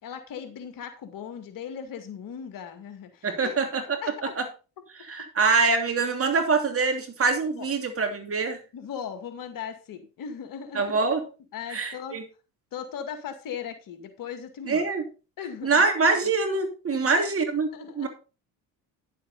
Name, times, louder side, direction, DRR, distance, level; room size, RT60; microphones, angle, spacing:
voice 1, 0.0-3.5 4.0-4.1 7.5-7.7 8.7-10.8 11.5-12.2 12.7-14.9 15.4-15.8 16.9-17.0 17.7-18.1, left 7 dB, 60° left, 8 dB, 2.2 m, -38 dB
voice 2, 3.2-4.5 5.1-8.6 10.7-11.3 11.7-12.2 14.7-15.1 15.6-17.7 18.0-18.1, right 4 dB, 35° right, 5 dB, 2.9 m, -24 dB
10.5 x 7.4 x 4.2 m, 0.33 s
supercardioid pair, 75°, 37 cm